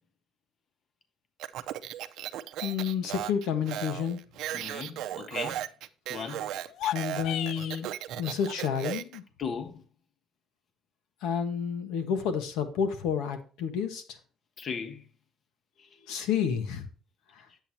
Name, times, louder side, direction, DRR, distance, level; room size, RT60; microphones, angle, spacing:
Speech, 1.4-9.2, right 12 dB, 70° right, 0.6 m, -36 dB
voice 1, 2.6-4.2 6.9-9.2 11.2-14.2 16.1-16.9 17.3-17.5, left 7 dB, 85° left, 1.4 m, -30 dB
voice 2, 4.5-5.6 6.1-6.4 9.4-9.8 14.6-15.0, left 6 dB, 40° left, 1.2 m, -36 dB
sound 1, 6.7-7.8, left 12 dB, 65° left, 0.3 m, -33 dB
10.5 x 8.0 x 2.8 m
cardioid pair, 135°, 0 cm